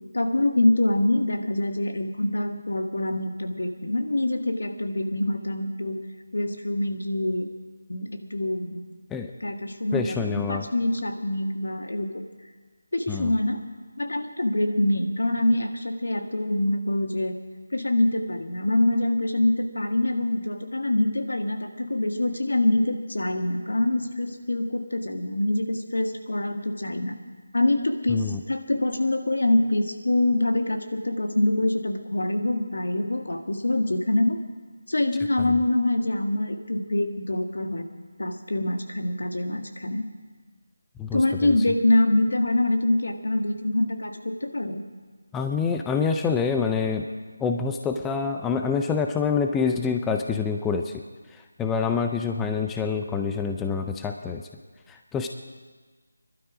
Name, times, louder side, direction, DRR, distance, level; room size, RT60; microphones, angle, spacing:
voice 1, 0.1-6.0 6.3-7.5 7.9-8.8 9.4-12.2 12.9-13.6 14.0-17.3 17.7-27.2 27.5-34.4 34.9-37.8 38.2-40.1 41.1-44.8, left 1 dB, 80° left, 5 dB, 1.8 m, -25 dB
voice 2, 9.9-10.7 13.1-13.3 28.1-28.4 41.0-41.5 45.3-47.1 47.4-50.9 51.6-54.4 54.9-55.3, left 5 dB, 5° left, 4 dB, 0.4 m, -26 dB
21.0 x 12.0 x 5.0 m, 1.4 s
figure-of-eight pair, 170°, 0 cm